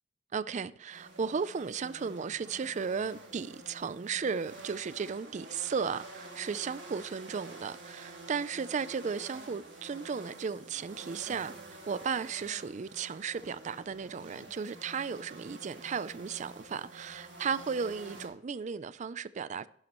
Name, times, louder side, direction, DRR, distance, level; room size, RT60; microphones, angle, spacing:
voice 1, 0.3-19.7, right 6 dB, 40° right, 0.4 m, -35 dB
sound 1, 0.9-18.3, right 2 dB, 75° right, 3.1 m, -49 dB
11.5 x 11.0 x 3.0 m
head